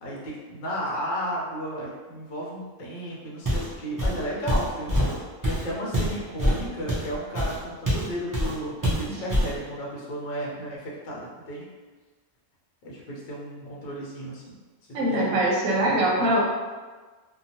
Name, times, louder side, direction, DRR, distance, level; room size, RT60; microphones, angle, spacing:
voice 1, 0.0-5.0 5.4-11.7 12.8-14.6 14.9-15.4 15.8-16.3, equal, 55° left, -4 dB, 0.6 m, -34 dB
Walk footsteps, 3.4-3.7 4.0-8.1 8.3-8.6 8.8-9.6, equal, 25° right, 0.4 m, -25 dB
voice 2, 14.9-16.4, right 1 dB, 85° right, -2 dB, 1.1 m, -22 dB
2.8 x 2.2 x 2.7 m, 1.3 s
omnidirectional pair, 1.4 m